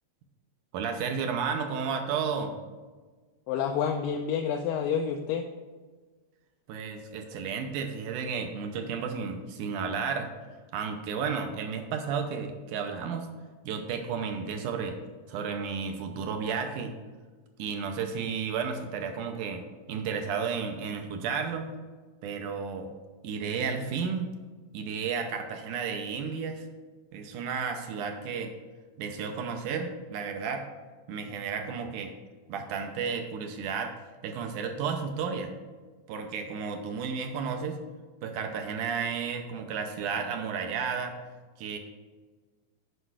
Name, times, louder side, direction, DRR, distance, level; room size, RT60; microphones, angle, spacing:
voice 1, 0.7-2.6 6.7-10.3 10.7-13.3 13.6-15.0 15.3-16.9 17.6-21.7 22.2-22.9 23.2-24.3 24.7-26.7 27.1-28.5 29.0-30.7 31.1-32.1 32.5-34.0 34.2-35.5 36.1-37.8 38.2-41.2 41.6-41.8, right 6 dB, 75° right, 5 dB, 2.0 m, -32 dB
voice 2, 3.5-5.5, left 7 dB, 80° left, 2 dB, 2.3 m, -28 dB
8.1 x 5.4 x 6.2 m, 1.4 s
omnidirectional pair, 4.0 m